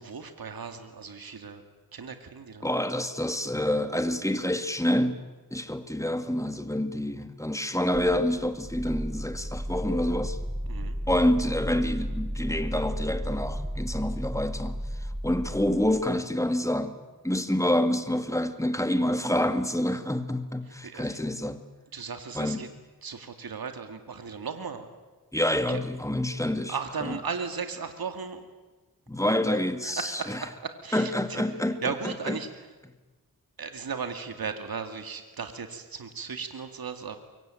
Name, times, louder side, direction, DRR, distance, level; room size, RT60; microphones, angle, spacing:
voice 1, 0.0-1.6 1.9-2.7 10.7-11.0 20.8-21.2 21.9-22.7 23.0-24.9 25.7-25.8 26.7-28.4 29.8-31.4 31.8-32.5 33.6-37.2, right 5 dB, 70° right, 2.3 m, -36 dB
voice 2, 2.6-5.2 5.5-10.4 11.1-17.0 17.2-21.6 22.3-22.6 25.3-27.2 29.1-30.4 30.9-32.4, left 1 dB, 10° left, 2.1 m, -27 dB
sound 1, 7.9-16.1, equal, 15° right, 2.3 m, -34 dB
24.5 x 23.5 x 9.1 m
wide cardioid pair, 75°, 37 cm